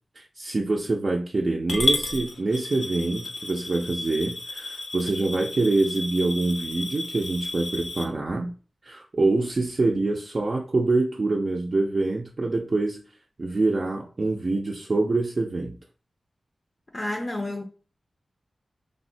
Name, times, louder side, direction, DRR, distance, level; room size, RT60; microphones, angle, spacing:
voice 1, 0.2-8.5 8.8-13.0 13.4-15.8, right 2 dB, 50° right, 0.4 m, -25 dB
Coin (dropping) / Glass, 1.7-8.0, left 2 dB, 85° left, 0.6 m, -32 dB
voice 2, 16.9-17.6, left 1 dB, 30° left, 0.4 m, -30 dB
3.4 x 2.1 x 2.6 m
wide cardioid pair, 80°, 0 cm